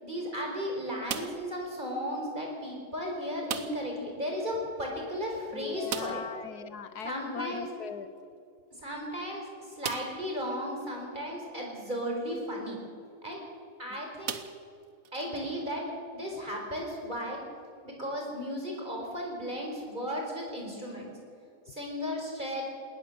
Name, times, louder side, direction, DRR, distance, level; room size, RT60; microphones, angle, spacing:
voice 1, 0.0-6.2 7.0-7.7 8.7-12.8 13.2-13.4 13.8-14.4 15.1-15.8 16.1-17.4 17.8-21.1 21.7-22.7, equal, 30° right, 0 dB, 4.7 m, -35 dB
sound 1, 1.0-1.6 3.4-4.0 4.3-4.4 4.7-4.8 5.9-6.4 8.2-8.3 8.9-9.0 9.8-10.3 11.0-11.1 13.1-13.4 14.2-15.1, right 8 dB, 60° right, 1.3 m, -37 dB
voice 2, 5.5-8.1 21.7-21.8, left 7 dB, 75° left, 12 dB, 1.4 m, -39 dB
20.0 x 19.0 x 6.9 m, 2.2 s
omnidirectional pair, 1.7 m